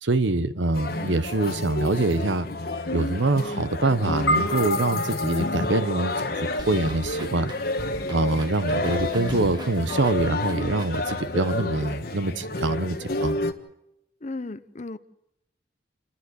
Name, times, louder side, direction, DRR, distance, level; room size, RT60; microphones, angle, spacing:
voice 1, 0.0-2.5 2.9-7.5 8.1-13.4, right 2 dB, 80° right, 1.0 m, -25 dB
sound 1, 0.7-13.5, left 2 dB, 55° left, 1.5 m, -30 dB
sound 2, 4.3-8.8, left 1 dB, 75° left, 1.6 m, -31 dB
sound 3, 6.6-11.5, right 1 dB, 25° right, 1.6 m, -41 dB
voice 2, 14.2-15.0, left 2 dB, 40° left, 0.7 m, -34 dB
29.0 x 12.5 x 8.0 m
head